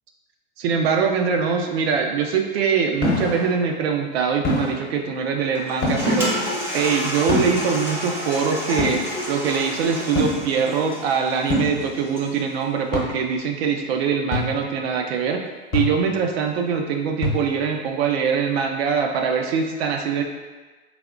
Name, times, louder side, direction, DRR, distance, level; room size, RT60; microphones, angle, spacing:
voice 1, 0.6-9.0 9.3-15.4 15.7-20.2, right 6 dB, 70° right, 3 dB, 0.5 m, -23 dB
sound 1, 3.0-3.5 4.4-4.7 5.8-6.1 7.3-7.6 8.8-9.0 10.1-10.4 11.5-11.8 12.9-13.1 14.3-14.7 15.7-16.1 17.2-17.6, left 2 dB, 35° left, 0.9 m, -24 dB
Toilet flush, 5.5-12.5, equal, 5° right, 0.6 m, -29 dB
3.4 x 2.8 x 2.4 m, 1.3 s
hypercardioid pair, 115°, 32 cm